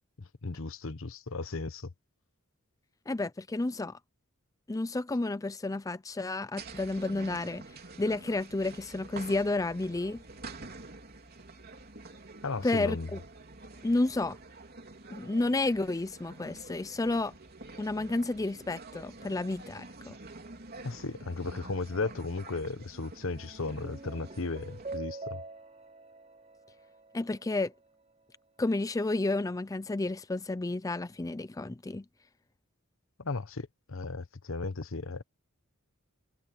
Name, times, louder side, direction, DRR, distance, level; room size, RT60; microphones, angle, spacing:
voice 1, 0.4-1.9 12.4-13.1 20.8-25.4 33.2-35.2, left 3 dB, 70° left, 1.1 m, -35 dB
voice 2, 3.1-4.0 4.7-7.6 8.0-10.2 12.6-13.2 13.8-14.4 15.1-17.3 17.8-20.2 27.1-27.7 28.6-32.0, left 2 dB, 15° left, 0.4 m, -31 dB
sound 1, 6.6-25.0, right 3 dB, 50° right, 3.5 m, -48 dB
sound 2, 23.1-27.7, right 3 dB, 35° right, 4.5 m, -45 dB
head